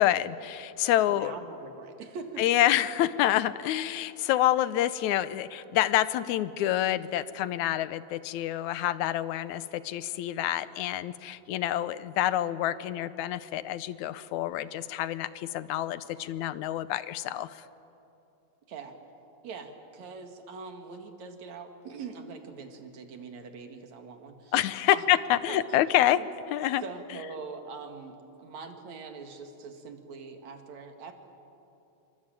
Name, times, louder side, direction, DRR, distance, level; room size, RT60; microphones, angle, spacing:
voice 1, 0.0-1.3 2.4-17.6 24.5-26.2 26.5-26.8, left 13 dB, 80° left, 15 dB, 2.1 m, -27 dB
voice 2, 1.1-2.4 18.7-19.0 19.4-24.5 24.9-25.0 25.5-25.8 26.1-26.3 26.8-31.1, right 4 dB, 70° right, 5 dB, 3.3 m, -43 dB
27.0 x 23.5 x 9.0 m, 2.9 s
omnidirectional pair, 3.3 m